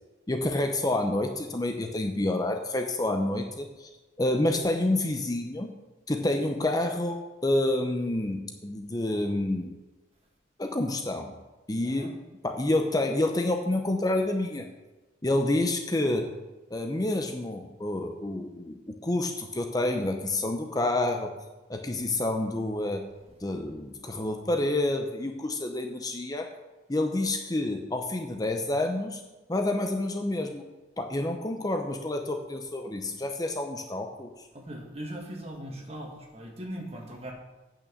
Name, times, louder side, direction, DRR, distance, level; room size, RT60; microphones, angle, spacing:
voice 1, 0.3-3.9 4.2-5.7 6.1-9.7 10.6-11.4 11.7-12.2 12.4-14.7 15.2-16.3 16.7-21.3 21.7-23.1 23.4-26.5 26.9-29.2 29.5-30.6 31.0-34.3, left 1 dB, 20° left, 5 dB, 0.7 m, -28 dB
voice 2, 34.5-37.3, right 1 dB, 35° right, 1 dB, 1.9 m, -40 dB
8.9 x 5.9 x 7.0 m, 1.1 s
head